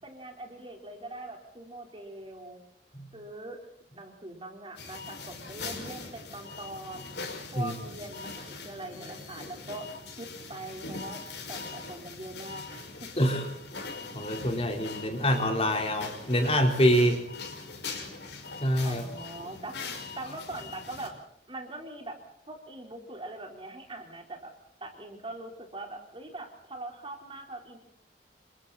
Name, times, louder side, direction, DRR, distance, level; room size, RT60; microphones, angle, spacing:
voice 1, 0.0-2.6 3.1-3.6 3.9-7.2 7.5-9.9 10.2-11.2 11.5-13.1 18.8-21.2 21.5-22.2 22.5-24.5 24.8-27.8, right 2 dB, 30° right, 2 dB, 4.2 m, -42 dB
sound 1, 4.8-21.1, left 4 dB, 80° left, 5.9 m, -41 dB
voice 2, 13.2-13.5 14.1-17.2 18.6-19.0, equal, 35° left, 3 dB, 4.2 m, -25 dB
29.0 x 25.0 x 4.3 m, 0.71 s
head